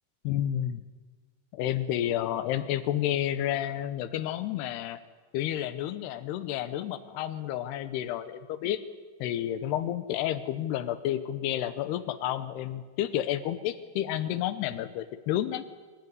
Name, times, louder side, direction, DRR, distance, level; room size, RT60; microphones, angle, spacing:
voice 1, 0.2-0.8 1.5-5.0 5.3-8.8 9.2-15.6, left 12 dB, 80° left, 11 dB, 2.4 m, -30 dB
25.0 x 15.5 x 9.6 m, 1.4 s
omnidirectional pair, 5.9 m